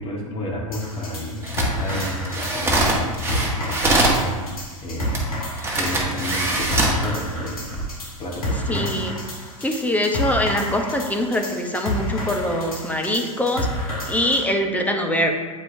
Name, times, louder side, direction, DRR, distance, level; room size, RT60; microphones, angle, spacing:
voice 1, 0.0-5.2 5.8-7.7 8.2-8.9, left 1 dB, 30° left, -1 dB, 1.6 m, -31 dB
sound 1, 0.7-14.4, left 1 dB, 90° left, 1.6 m, -30 dB
sound 2, 1.4-4.2 5.1-5.2 5.6-7.0 7.6-7.8, right 2 dB, 15° right, 1.4 m, -22 dB
voice 2, 8.7-9.2 9.6-15.3, left 1 dB, 10° left, 3 dB, 0.7 m, -23 dB
8.3 x 4.8 x 2.6 m, 1.3 s
hypercardioid pair, 95°, 18 cm